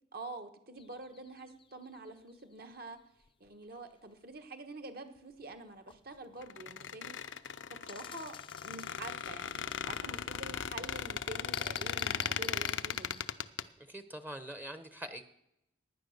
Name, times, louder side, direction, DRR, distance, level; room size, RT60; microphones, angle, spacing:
voice 1, 0.1-3.0 3.4-7.2 7.4-13.2, right 2 dB, 55° right, 7 dB, 1.4 m, -47 dB
sound 1, 0.7-4.4 5.1-13.3, left 7 dB, 30° left, 0.4 m, -53 dB
Squeak, 6.4-13.6, left 8 dB, 85° left, 0.6 m, -37 dB
voice 2, 13.9-15.2, right 1 dB, 10° right, 9 dB, 0.7 m, -43 dB
16.0 x 10.0 x 6.6 m, 0.84 s
head